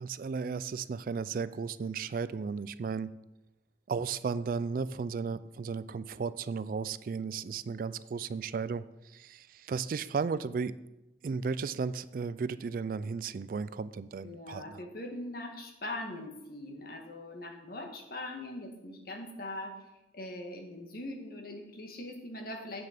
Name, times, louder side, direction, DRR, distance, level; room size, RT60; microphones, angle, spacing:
voice 1, 0.0-3.1 3.9-10.7 11.2-14.8, right 5 dB, 50° right, 16 dB, 0.3 m, -34 dB
voice 2, 14.2-19.8 20.1-22.9, left 1 dB, 50° left, 2 dB, 1.8 m, -41 dB
8.8 x 6.6 x 6.6 m, 0.96 s
head